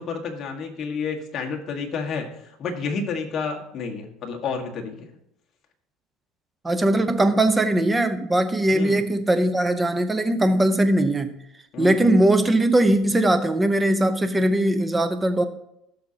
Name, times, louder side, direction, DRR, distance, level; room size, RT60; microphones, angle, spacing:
voice 1, 0.0-5.1 8.7-9.1 11.7-12.1, left 5 dB, 40° left, 1 dB, 1.8 m, -30 dB
voice 2, 6.6-11.3 11.8-15.4, right 1 dB, 15° right, 9 dB, 0.8 m, -20 dB
16.0 x 6.5 x 2.9 m, 0.81 s
supercardioid pair, 120°, 0 cm